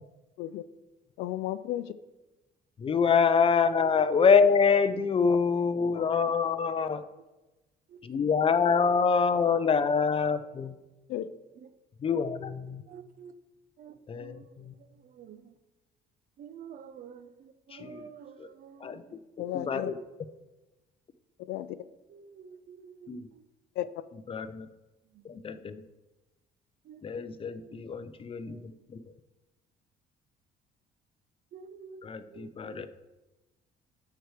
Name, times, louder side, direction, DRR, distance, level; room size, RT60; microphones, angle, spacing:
voice 1, 1.2-1.9 5.3-5.4 5.9-6.1 11.1-11.3 19.4-19.9 21.5-21.8 23.8-23.9, left 13 dB, 85° left, 0.5 m, -34 dB
voice 2, 2.8-7.0 8.0-10.7 12.0-12.8 14.1-14.7 17.7-18.0 18.4-18.5 18.8-19.2 19.5-20.0 23.1-23.3 24.3-24.7 25.2-25.8 27.0-29.0 32.0-32.9, left 5 dB, 35° left, 0.7 m, -26 dB
voice 3, 12.9-13.3 13.8-15.6 16.4-19.1 22.1-23.4 25.1-25.3 26.8-27.3 27.6-27.9 28.5-28.7 31.5-32.8, right 7 dB, 55° right, 0.7 m, -50 dB
13.0 x 4.7 x 4.9 m
cardioid pair, 110°, 17 cm